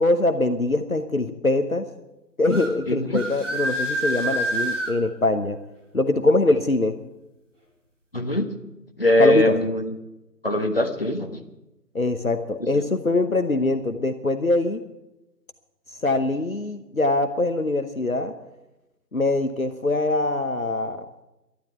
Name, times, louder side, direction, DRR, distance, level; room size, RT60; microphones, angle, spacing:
voice 1, 0.0-1.9 2.4-5.6 5.9-7.0 9.2-9.6 11.9-14.8 16.0-18.3 19.1-21.2, left 2 dB, 55° left, 7 dB, 1.1 m, -23 dB
sound 1, 2.5-2.7 3.1-4.9, right 1 dB, 45° right, 3.3 m, -27 dB
voice 2, 2.9-3.2 8.1-8.6 9.0-9.9 10.4-11.4 12.7-12.8, left 1 dB, 35° left, 5 dB, 1.3 m, -22 dB
12.0 x 11.5 x 9.2 m, 0.97 s
figure-of-eight pair, 170°, 50 cm